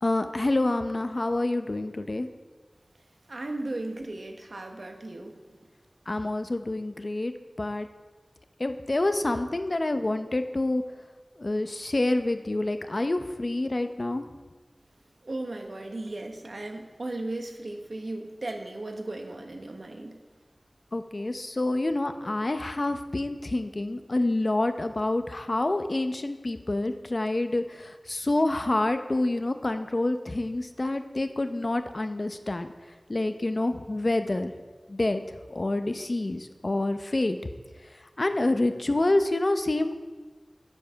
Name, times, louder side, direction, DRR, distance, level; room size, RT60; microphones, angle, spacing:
voice 1, 0.0-2.3 6.1-7.3 7.6-7.9 8.6-10.8 11.4-14.2 20.9-32.7 33.1-34.5 34.9-35.2 35.5-37.4 38.2-40.0, left 2 dB, 55° left, 8 dB, 0.6 m, -27 dB
voice 2, 3.3-5.4 15.2-20.2, right 2 dB, 85° right, 4 dB, 1.0 m, -36 dB
8.0 x 7.1 x 5.6 m, 1.3 s
wide cardioid pair, 55°, 0 cm